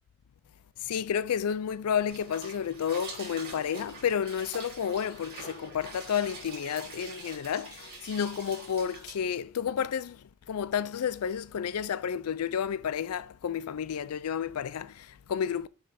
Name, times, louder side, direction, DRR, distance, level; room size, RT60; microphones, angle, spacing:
voice 1, 0.8-15.7, left 8 dB, 90° left, 0.4 m, -31 dB
sound 1, 2.1-9.2, right 3 dB, 45° right, 3.0 m, -45 dB
7.1 x 3.3 x 5.0 m
head